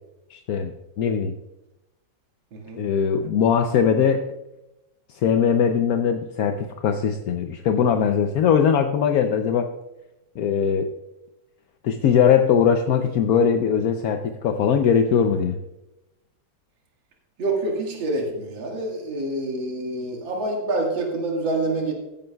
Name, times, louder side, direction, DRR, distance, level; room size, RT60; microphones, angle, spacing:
voice 1, 0.3-1.3 2.8-4.3 5.2-9.7 10.4-10.9 11.8-15.6, left 7 dB, 70° left, 6 dB, 0.9 m, -20 dB
voice 2, 17.4-21.9, right 2 dB, 75° right, 0 dB, 2.5 m, -26 dB
16.0 x 9.1 x 2.3 m, 0.92 s
omnidirectional pair, 2.1 m